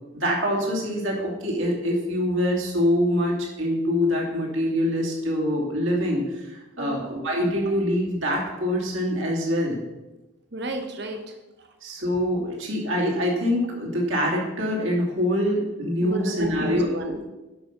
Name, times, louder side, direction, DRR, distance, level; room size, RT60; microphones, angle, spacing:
voice 1, 0.1-9.8 11.8-16.9, equal, 80° right, -2 dB, 2.9 m, -25 dB
voice 2, 10.5-11.7 16.0-17.3, right 1 dB, 55° right, 5 dB, 1.3 m, -33 dB
10.5 x 6.0 x 5.3 m, 1.1 s
head